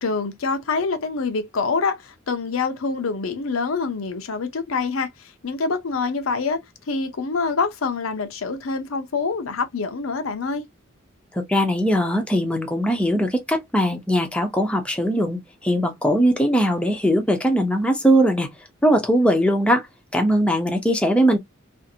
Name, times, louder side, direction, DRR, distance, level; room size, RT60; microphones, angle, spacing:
voice 1, 0.0-10.6, left 4 dB, 85° left, 0.6 m, -26 dB
voice 2, 11.3-18.5 18.8-19.9 20.1-21.4, equal, 5° left, 0.6 m, -20 dB
2.6 x 2.5 x 2.6 m
head